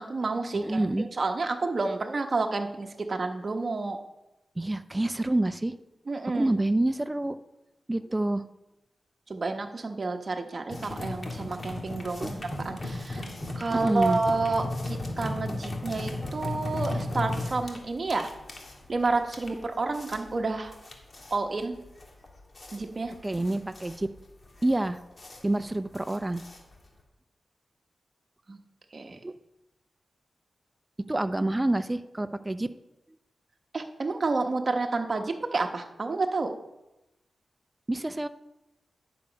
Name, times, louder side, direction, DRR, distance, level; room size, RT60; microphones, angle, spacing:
voice 1, 0.0-0.8 1.2-4.0 6.1-6.5 9.3-13.3 13.6-18.3 18.9-20.7 21.3-21.8 22.7-23.1 28.5-28.6 28.9-29.2 33.7-36.5, right 3 dB, 50° right, 4 dB, 1.1 m, -30 dB
voice 2, 0.5-1.1 4.6-5.8 6.3-7.4 7.9-8.4 12.2-12.3 13.7-14.2 23.2-24.1 24.6-25.0 25.4-26.4 29.2-29.3 31.1-32.7 37.9-38.3, right 1 dB, 20° right, 11 dB, 0.5 m, -27 dB
sound 1, 10.7-27.0, left 2 dB, 45° left, 1.8 m, -36 dB
10.5 x 6.9 x 5.2 m, 0.95 s
cardioid pair, 70°, 0 cm